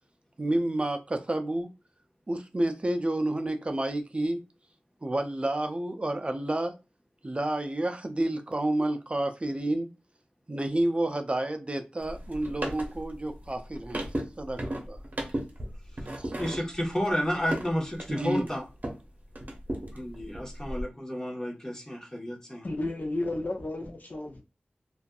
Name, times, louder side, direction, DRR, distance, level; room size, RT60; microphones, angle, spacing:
voice 1, 0.4-1.7 2.3-4.4 5.0-6.8 7.2-9.9 10.5-14.0 14.4-15.0 16.1-16.3 18.1-18.5, right 1 dB, 35° right, 0.4 m, -30 dB
sound 1, 12.0-19.1 19.4-20.8, right 1 dB, 50° right, 0.8 m, -36 dB
voice 2, 15.9-18.7 19.9-22.7, equal, 15° left, 1.0 m, -32 dB
voice 3, 22.6-24.4, left 2 dB, 50° left, 0.6 m, -32 dB
2.5 x 2.4 x 2.3 m
cardioid pair, 40°, 4 cm